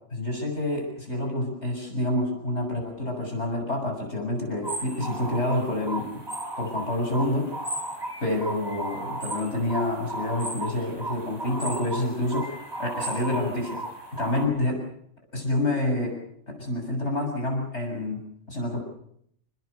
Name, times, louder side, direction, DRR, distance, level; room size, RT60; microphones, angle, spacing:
voice 1, 0.1-6.2 6.6-7.6 8.2-14.8 15.3-16.2 16.5-18.8, left 1 dB, 70° left, 2 dB, 7.2 m, -28 dB
sound 1, 4.6-14.5, right 1 dB, 20° right, 4.7 m, -35 dB
29.0 x 20.0 x 6.8 m, 0.70 s
omnidirectional pair, 1.2 m